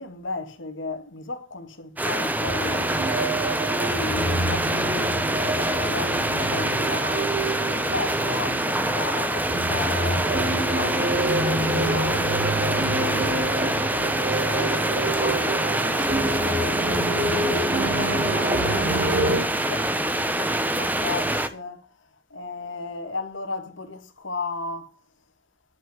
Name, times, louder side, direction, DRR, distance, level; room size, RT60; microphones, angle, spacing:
voice 1, 0.0-2.9 3.8-7.1 7.7-10.3 10.7-13.5 14.4-16.8 18.0-21.9 22.3-25.0, left 3 dB, 80° left, 2.1 m, -35 dB
sound 1, 2.0-21.5, right 1 dB, 10° right, 1.0 m, -25 dB
sound 2, 2.5-19.4, right 1 dB, 50° right, 2.4 m, -28 dB
11.0 x 5.7 x 8.0 m
head